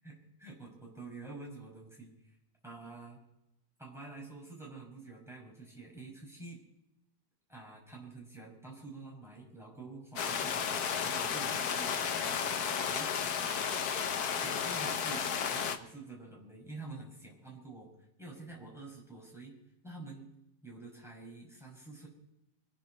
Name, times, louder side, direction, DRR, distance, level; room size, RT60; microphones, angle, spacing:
voice 1, 0.0-2.4 2.6-3.2 3.8-6.6 7.5-12.3 12.7-13.6 14.3-15.2 15.5-19.5 19.8-20.3 20.6-22.1, right 3 dB, ahead, -2 dB, 5.7 m, -48 dB
sound 1, 10.2-15.8, left 7 dB, 60° left, 1.5 m, -33 dB
25.0 x 10.5 x 4.3 m, 0.89 s
omnidirectional pair, 2.0 m